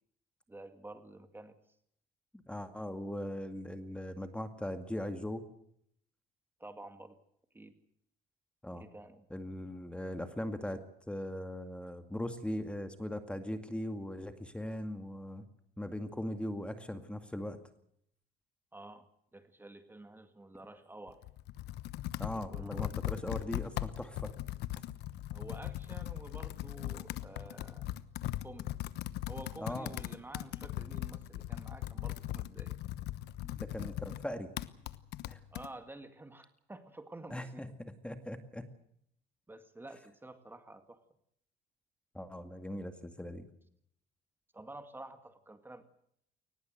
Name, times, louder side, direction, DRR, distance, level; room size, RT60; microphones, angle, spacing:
voice 1, 0.5-1.6 6.6-7.2 7.5-7.7 8.7-9.3 18.7-19.1 19.3-21.2 22.5-23.2 25.3-27.9 28.4-28.8 29.3-32.8 35.5-37.7 39.5-41.0 44.5-45.8, right 2 dB, 10° right, 8 dB, 2.1 m, -50 dB
voice 2, 2.3-5.4 8.6-8.9 9.3-10.8 11.1-15.4 15.8-17.6 22.2-24.3 29.6-29.9 33.4-34.5 35.3-35.4 37.3-38.7 42.1-43.5, left 1 dB, 5° left, 8 dB, 2.2 m, -39 dB
Computer keyboard, 21.1-35.7, left 14 dB, 80° left, 1.1 m, -39 dB
22.5 x 19.5 x 7.8 m, 0.70 s
cardioid pair, 110°, 17 cm